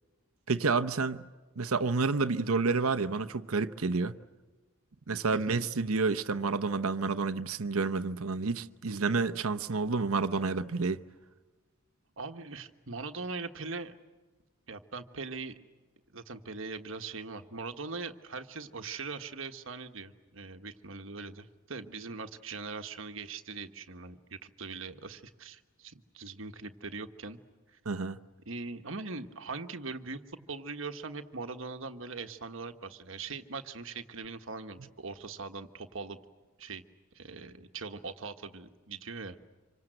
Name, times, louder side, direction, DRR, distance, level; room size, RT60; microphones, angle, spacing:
voice 1, 0.5-1.3 1.6-4.2 5.1-11.0 27.9-28.2, right 4 dB, 85° right, 0.9 m, -29 dB
voice 2, 5.3-5.6 12.2-14.0 14.7-15.5 16.1-27.4 27.7-27.8 28.4-30.2 30.5-36.2 36.6-36.8 37.1-39.4, right 4 dB, 65° right, 1.4 m, -41 dB
27.0 x 25.0 x 7.9 m
head